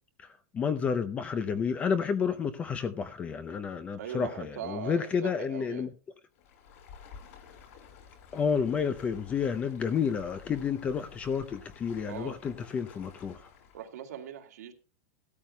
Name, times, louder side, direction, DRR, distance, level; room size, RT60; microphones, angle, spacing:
voice 1, 0.2-5.9 8.3-13.5, left 6 dB, 15° left, 0.5 m, -30 dB
voice 2, 4.0-5.9 12.1-12.4 13.7-14.7, right 8 dB, 80° right, 2.1 m, -40 dB
Stream, 6.3-13.9, left 6 dB, 55° left, 4.2 m, -52 dB
16.0 x 13.0 x 2.2 m
supercardioid pair, 170°, 9 cm